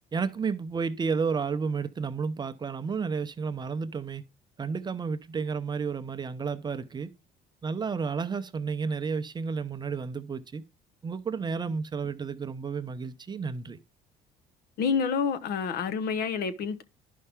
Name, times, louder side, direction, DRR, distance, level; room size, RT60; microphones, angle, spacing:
voice 1, 0.1-4.2 4.6-7.1 7.6-10.6 11.0-13.8, right 5 dB, 25° right, 0.6 m, -31 dB
voice 2, 14.8-16.8, left 6 dB, 60° left, 0.9 m, -28 dB
11.0 x 5.5 x 3.5 m
cardioid pair, 105°, 17 cm